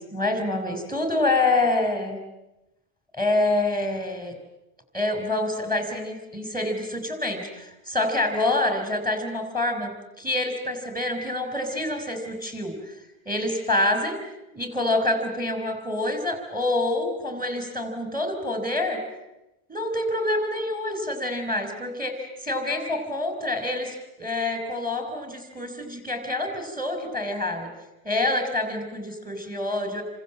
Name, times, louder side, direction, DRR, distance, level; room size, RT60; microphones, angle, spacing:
voice 1, 0.0-2.2 3.1-4.3 4.9-13.0 13.3-14.2 14.5-19.0 19.7-27.7 28.0-30.0, left 2 dB, 10° right, 6 dB, 5.5 m, -27 dB
29.0 x 26.0 x 7.6 m, 0.93 s
omnidirectional pair, 1.1 m